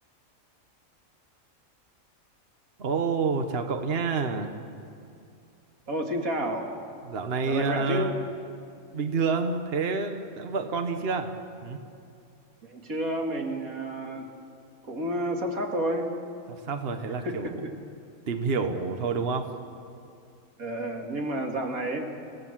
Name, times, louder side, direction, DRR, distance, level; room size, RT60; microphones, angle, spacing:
voice 1, 2.8-4.5 7.0-8.2 8.9-11.3 11.6-11.8 16.5-17.6 18.3-19.5, right 4 dB, 45° right, 6 dB, 1.4 m, -28 dB
voice 2, 5.9-6.8 7.5-8.2 12.6-14.3 14.9-16.1 17.2-17.5 20.6-22.2, right 1 dB, 85° right, 2 dB, 2.8 m, -30 dB
29.5 x 17.5 x 7.5 m, 2.5 s
omnidirectional pair, 1.4 m